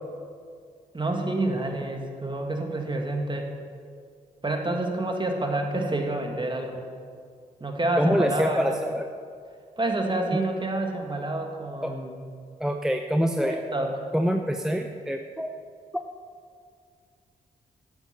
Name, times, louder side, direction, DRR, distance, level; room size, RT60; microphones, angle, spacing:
voice 1, 0.9-3.5 4.4-6.9 7.6-8.8 9.8-12.2 13.4-13.9, right 2 dB, 25° right, 2 dB, 2.0 m, -28 dB
voice 2, 8.0-9.0 11.8-12.0 12.6-13.7 14.1-15.5 15.9-16.0, equal, 5° right, 5 dB, 0.7 m, -25 dB
11.5 x 8.1 x 5.9 m, 2.2 s
supercardioid pair, 50°, 18 cm